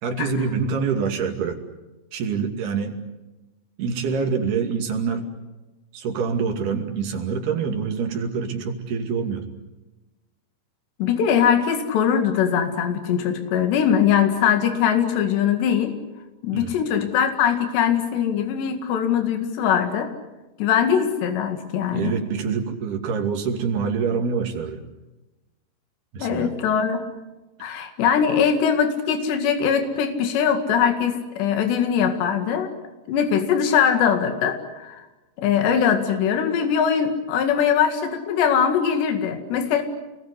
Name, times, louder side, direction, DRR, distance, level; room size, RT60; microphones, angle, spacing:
voice 1, 0.0-1.6 2.1-3.0 3.8-5.3 5.9-9.5 16.5-16.7 21.9-24.8 26.1-26.6, right 5 dB, 65° right, 3 dB, 4.4 m, -26 dB
voice 2, 11.0-15.9 16.4-20.1 20.6-22.1 26.2-27.0 27.6-32.7 33.1-35.0 35.4-39.8, left 8 dB, 80° left, 6 dB, 4.2 m, -21 dB
29.0 x 21.0 x 8.2 m, 1.1 s
omnidirectional pair, 4.9 m